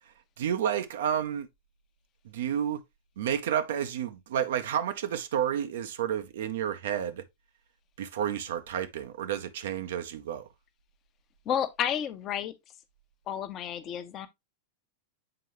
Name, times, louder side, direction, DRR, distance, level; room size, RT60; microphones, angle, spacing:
voice 1, 0.4-1.5 2.3-2.8 3.2-7.2 8.0-10.5, right 9 dB, 60° right, 0.6 m, -30 dB
voice 2, 11.5-12.5 13.3-14.3, left 9 dB, 30° left, 0.8 m, -31 dB
7.8 x 4.5 x 3.0 m
figure-of-eight pair, 90°, 0 cm